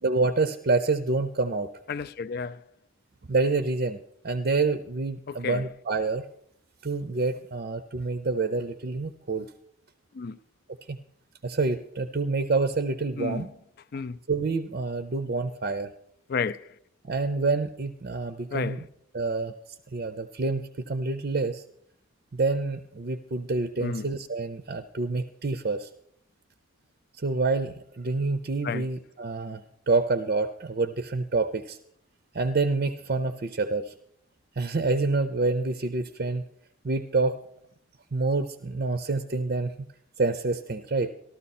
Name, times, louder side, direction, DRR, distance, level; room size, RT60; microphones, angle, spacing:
voice 1, 0.0-1.7 3.3-6.2 6.8-9.5 10.9-11.0 11.4-13.5 14.3-15.9 17.0-18.8 19.1-19.5 19.9-21.6 22.3-25.9 27.2-31.8 32.3-33.9 34.6-36.4 36.8-37.4 38.1-39.9 40.2-41.1, right 3 dB, 45° right, 0.5 m, -27 dB
voice 2, 1.9-2.6 5.3-5.6 10.1-10.4 13.2-13.5 13.9-14.2 16.3-16.7 18.5-18.8 23.8-24.1 28.6-28.9, left 5 dB, 45° left, 0.4 m, -32 dB
14.0 x 13.0 x 4.2 m
head